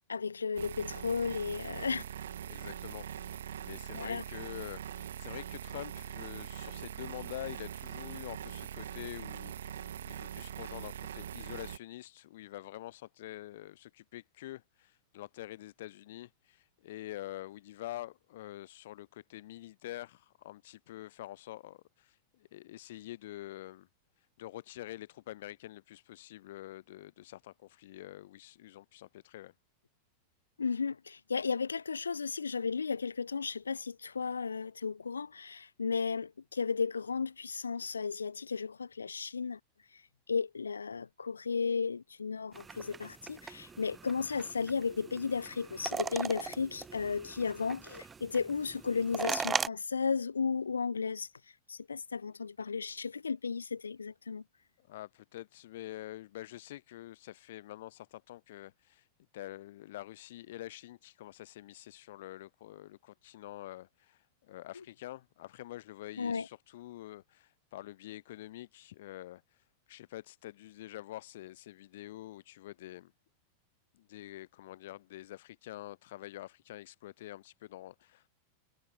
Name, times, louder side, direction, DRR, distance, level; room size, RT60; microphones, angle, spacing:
voice 1, 0.1-2.1 3.9-4.2 30.6-39.6 40.3-51.3 51.7-54.4 66.2-66.5, left 5 dB, 75° left, 1.3 m, -34 dB
sound 1, 0.6-11.8, right 10 dB, 65° right, 2.1 m, -42 dB
voice 2, 2.5-23.9 24.4-29.5 54.8-59.1 59.3-69.4 69.9-73.1 73.9-78.3, left 15 dB, 55° left, 2.0 m, -46 dB
sound 2, 42.5-49.7, right 5 dB, 15° right, 0.8 m, -39 dB
figure-of-eight pair, 90°, 0 cm